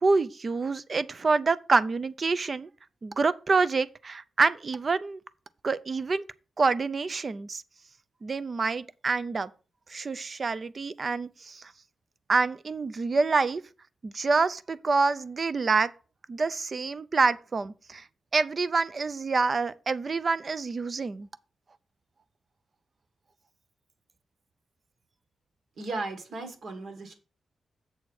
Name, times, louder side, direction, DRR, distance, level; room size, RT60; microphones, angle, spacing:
voice 1, 0.0-2.7 3.0-5.2 5.6-6.2 6.6-7.6 8.2-9.5 9.9-11.7 12.3-13.6 14.0-15.9 16.3-18.0 18.3-21.3, right 4 dB, 30° right, 0.4 m, -27 dB
voice 2, 25.8-27.1, right 3 dB, 60° right, 1.6 m, -36 dB
7.6 x 4.2 x 6.3 m
wide cardioid pair, 170°, 0 cm